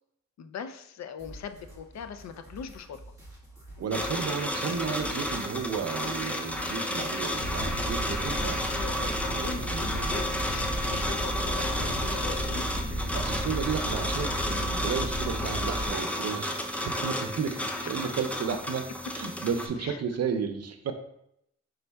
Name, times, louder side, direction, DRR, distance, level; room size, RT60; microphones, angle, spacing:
voice 1, 0.4-3.0 8.7-12.7 17.8-18.0 19.8-20.0, left 7 dB, 65° left, 10 dB, 0.5 m, -40 dB
sound 1, 1.2-9.2, right 1 dB, 10° right, 1.4 m, -48 dB
voice 2, 3.8-8.6 9.3-10.2 13.1-18.8 19.1-20.9, right 6 dB, 60° right, 7 dB, 0.5 m, -33 dB
sound 2, 3.9-19.7, left 1 dB, 5° left, 0.5 m, -32 dB
sound 3, 7.4-15.9, right 1 dB, 30° left, 1.2 m, -33 dB
5.2 x 3.8 x 2.2 m, 0.76 s
cardioid pair, 95°, 29 cm